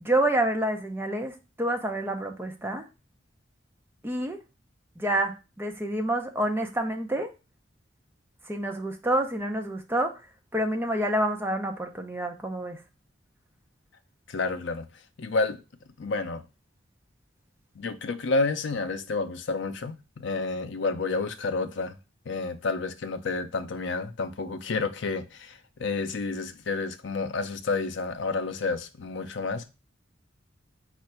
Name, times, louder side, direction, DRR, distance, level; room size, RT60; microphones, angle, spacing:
voice 1, 0.0-2.8 4.0-4.4 5.0-7.3 8.5-10.2 10.5-12.8, right 1 dB, 10° right, 0.6 m, -28 dB
voice 2, 14.3-14.9 15.2-15.6 16.0-16.4 17.8-22.0 22.3-29.6, left 3 dB, 65° left, 0.5 m, -30 dB
4.3 x 2.5 x 4.3 m
head